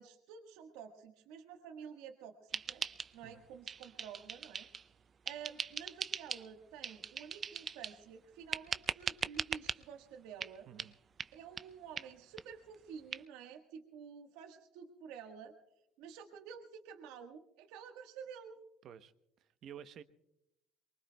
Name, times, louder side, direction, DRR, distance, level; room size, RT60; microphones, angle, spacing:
voice 1, 0.0-2.9 3.1-4.7 5.2-10.7 11.3-15.5 16.0-18.6, right 7 dB, 90° right, 4 dB, 1.4 m, -50 dB
sound 1, 2.5-3.4 3.7-4.9 5.3-6.5 6.8-8.0 8.5-9.8 10.4-10.5 10.8-10.9 11.2-11.3 11.6-11.7 12.0-12.1 12.4-12.5 12.7-12.8 13.1-13.2, right 6 dB, 35° right, 0.4 m, -40 dB
voice 2, 19.4-20.0, right 9 dB, 55° right, 11 dB, 0.9 m, -51 dB
23.5 x 23.5 x 2.3 m, 0.85 s
cardioid pair, 115°, 0 cm